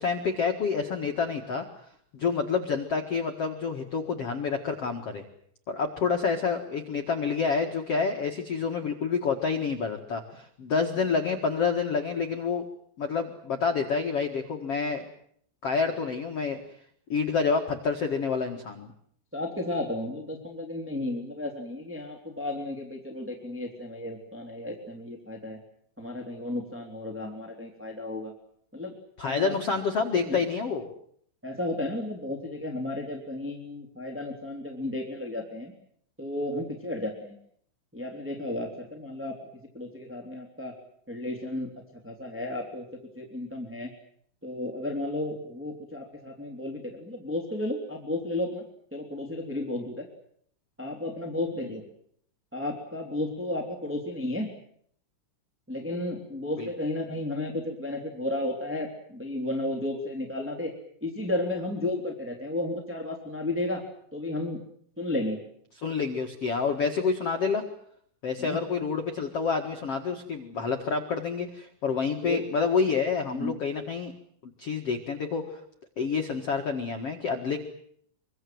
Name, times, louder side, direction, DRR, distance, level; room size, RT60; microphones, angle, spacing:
voice 1, 0.0-1.6 2.1-5.2 5.7-12.6 13.0-15.1 15.6-16.6 17.1-18.9 29.2-30.9 51.6-51.7 56.6-56.7 65.8-67.6 68.2-74.1 74.6-75.6 76.0-77.6, left 5 dB, 85° left, 4 dB, 1.3 m, -28 dB
voice 2, 19.3-25.6 26.0-28.3 28.7-28.9 29.2-29.5 30.2-30.4 31.4-35.7 36.2-37.4 37.9-39.3 39.7-40.7 41.1-41.7 42.0-42.8 43.2-43.9 44.4-48.6 48.9-50.1 50.8-51.8 52.5-54.5 55.7-60.7 61.0-63.8 64.1-64.6 65.0-65.4 68.4-68.6 72.2-72.4 73.4-73.6, left 1 dB, 5° right, -1 dB, 2.2 m, -33 dB
25.0 x 24.5 x 7.9 m, 0.65 s
omnidirectional pair, 5.9 m